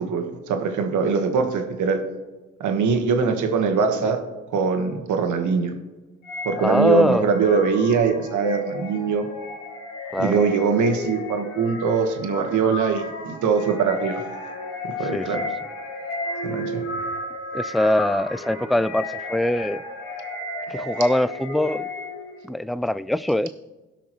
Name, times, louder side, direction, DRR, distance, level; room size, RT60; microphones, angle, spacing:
voice 1, 0.0-2.0 2.6-4.2 4.5-5.7 6.4-9.3 10.2-14.2 15.0-15.5 16.4-16.8, right 5 dB, 70° right, 1.5 m, -22 dB
sound 1, 6.2-22.5, left 2 dB, 90° left, 1.8 m, -33 dB
voice 2, 6.6-7.3 10.1-10.3 15.1-15.5 17.5-19.8 20.7-21.9 22.4-23.5, left 1 dB, ahead, 0.3 m, -22 dB
17.5 x 5.9 x 3.1 m
supercardioid pair, 55°, 31 cm